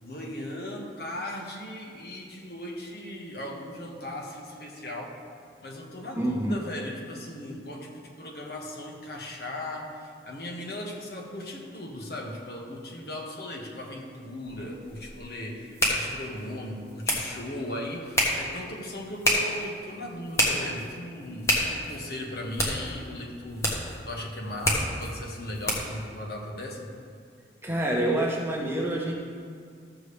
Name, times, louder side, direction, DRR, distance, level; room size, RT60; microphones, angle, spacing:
voice 1, 0.0-5.2 5.6-23.7 24.1-26.9, left 1 dB, 55° left, -1 dB, 1.4 m, -37 dB
voice 2, 6.1-6.5 27.6-29.1, right 1 dB, 15° right, -2 dB, 1.0 m, -27 dB
sound 1, 14.4-26.0, equal, 15° left, 1.2 m, -30 dB
13.5 x 6.9 x 3.3 m, 2.1 s
head